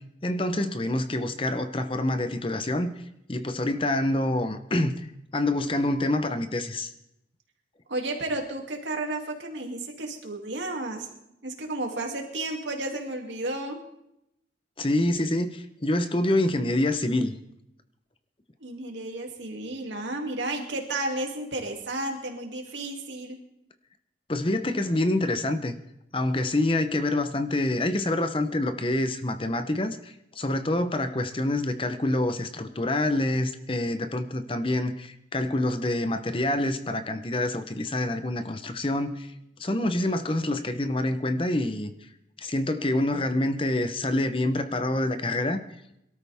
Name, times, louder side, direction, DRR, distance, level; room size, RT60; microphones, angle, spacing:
voice 1, 0.2-2.9 3.3-5.1 5.3-6.9 14.8-17.3 24.3-25.7 26.1-39.3 39.6-41.9 42.4-45.6, left 1 dB, 30° left, 9 dB, 0.9 m, -26 dB
voice 2, 7.9-11.1 11.4-13.8 18.6-23.4, right 2 dB, 85° right, 2 dB, 2.7 m, -32 dB
23.0 x 13.0 x 3.6 m, 0.81 s
head